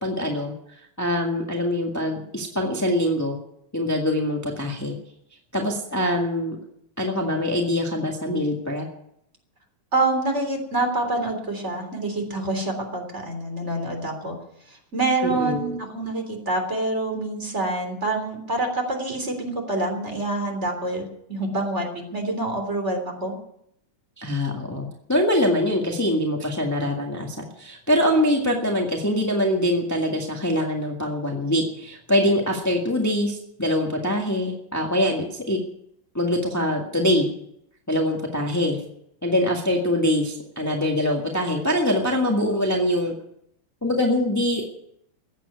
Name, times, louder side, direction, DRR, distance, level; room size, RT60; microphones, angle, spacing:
voice 1, 0.0-3.4 3.7-5.0 5.5-6.6 7.0-8.9 15.2-15.7 24.2-35.6 36.1-37.3 37.9-38.8 39.2-43.1 43.8-44.6, left 1 dB, 10° left, 0 dB, 1.7 m, -24 dB
voice 2, 9.9-14.3 14.7-21.0 21.3-23.3, right 2 dB, 35° right, 3 dB, 3.8 m, -26 dB
15.0 x 9.3 x 9.6 m, 0.74 s
omnidirectional pair, 2.2 m